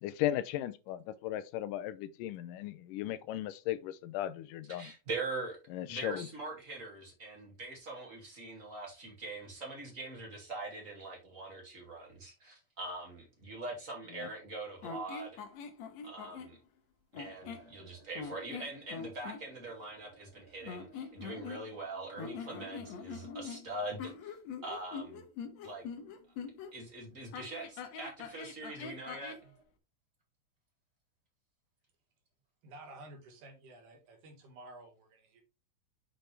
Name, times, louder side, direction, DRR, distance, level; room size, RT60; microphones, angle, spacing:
voice 1, 0.0-4.9 5.7-6.3 14.1-14.3, left 13 dB, 90° left, 2.2 m, -36 dB
voice 2, 4.8-5.6 5.9-15.4 16.0-16.6 17.1-24.3 24.6-25.3 25.6-25.8 26.7-29.5, right 2 dB, 25° right, 2.3 m, -43 dB
sound 1, 14.8-16.6 17.1-17.7 18.2-19.4 20.6-21.9 22.2-26.7 27.3-29.5, left 6 dB, 65° left, 2.0 m, -43 dB
sound 2, 15.1-15.8 16.0-16.1 16.5-16.6 17.0-17.1 17.3-23.6 24.8-24.9 25.2-25.4 25.7-26.0 26.5-26.6 26.9-27.3 27.9-29.6, right 4 dB, 50° right, 2.9 m, -63 dB
voice 3, 32.6-35.4, right 2 dB, 75° right, 3.3 m, -52 dB
6.6 x 5.9 x 3.4 m
omnidirectional pair, 3.7 m